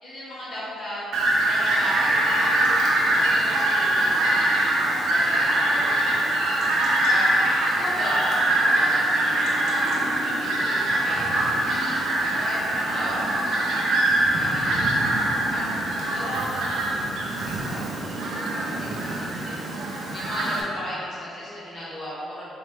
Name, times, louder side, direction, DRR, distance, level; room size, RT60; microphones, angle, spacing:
voice 1, 0.0-1.0 1.4-2.6 2.9-4.4 4.7-6.6 7.0-7.3 7.7-9.0 9.3-13.8 14.2-15.0 15.5-15.7 16.1-19.8 20.1-22.4, equal, 55° left, -10 dB, 1.4 m, -36 dB
Fowl, 1.1-20.6, right 1 dB, 80° right, 0.7 m, -23 dB
4.1 x 2.9 x 3.4 m, 2.9 s
cardioid pair, 90°, 0 cm